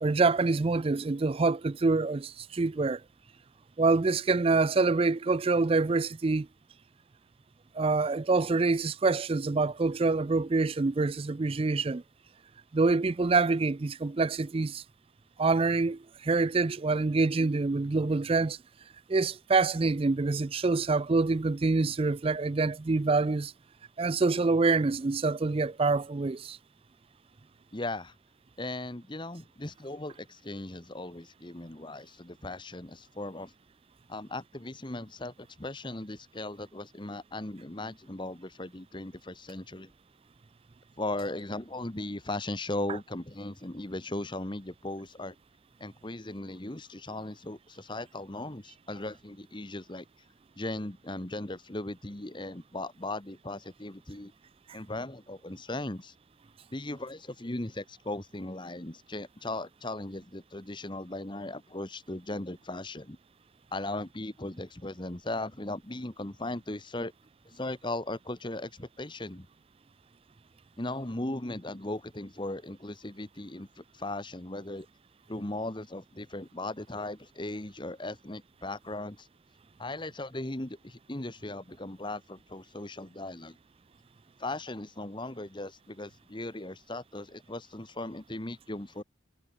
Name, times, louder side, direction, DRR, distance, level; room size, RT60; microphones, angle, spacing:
voice 1, 0.0-3.0 3.8-6.5 7.7-12.0 12.7-14.8 15.4-18.6 19.1-23.5 24.0-26.6, right 3 dB, 30° right, 0.4 m, -26 dB
voice 2, 27.7-28.1 28.6-33.5 34.1-39.9 41.0-45.3 45.8-50.1 50.6-54.3 54.7-56.1 56.7-63.2 63.7-67.1 67.5-69.5 70.8-74.9 75.3-79.3 79.8-83.6 84.4-89.0, left 2 dB, 25° left, 1.4 m, -38 dB
head